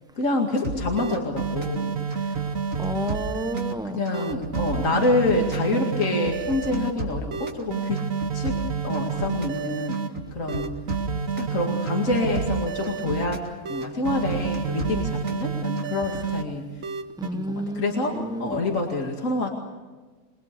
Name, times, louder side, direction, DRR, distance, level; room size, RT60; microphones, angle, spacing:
voice 1, 0.2-2.0 3.9-8.0 8.3-8.5 8.8-10.0 10.3-10.7 11.4-13.4 13.7-16.7 17.3-19.5, left 2 dB, 65° left, 1 dB, 2.6 m, -26 dB
sound 1, 0.5-0.6 1.0-3.7 4.1-6.9 7.3-10.1 10.5-13.3 13.7-16.4 16.8-17.3, right 6 dB, 65° right, 1.7 m, -29 dB
sound 2, 0.6-1.8 2.1-3.7 4.1-5.7 6.0-7.6 8.0-9.6 9.9-11.5 11.9-13.5 13.8-15.4 15.8-16.2, right 2 dB, 90° right, 3.7 m, -34 dB
voice 2, 2.8-4.0 17.2-18.5, right 1 dB, 5° right, 8 dB, 1.2 m, -31 dB
29.0 x 21.5 x 6.8 m, 1.3 s
omnidirectional pair, 1.5 m